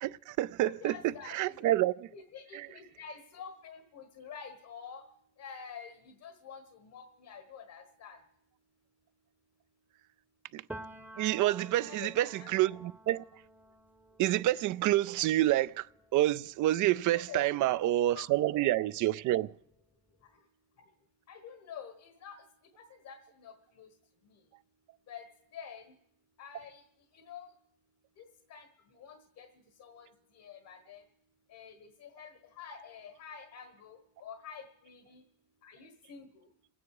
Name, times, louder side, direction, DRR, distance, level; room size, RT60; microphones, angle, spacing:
voice 1, 0.0-2.1 2.5-2.7 10.5-10.6 11.2-13.2 14.2-15.9 16.1-19.5, right 15 dB, 75° right, 0.5 m, -28 dB
voice 2, 0.6-1.7 2.1-5.0 5.4-8.2 11.9-12.5 17.1-17.6 18.1-18.3 21.3-22.4 23.0-23.9 25.1-25.2 25.5-25.8 26.4-26.8 27.1-27.5 28.2-28.3 28.5-28.7 29.0-29.5 29.8-30.1 30.3-31.0 31.5-35.2 35.6-36.3, left 7 dB, 85° left, 1.5 m, -48 dB
Piano, 10.7-18.3 18.7-20.2, right 1 dB, 5° right, 0.7 m, -52 dB
28.0 x 9.3 x 4.8 m
cardioid pair, 90°, 30 cm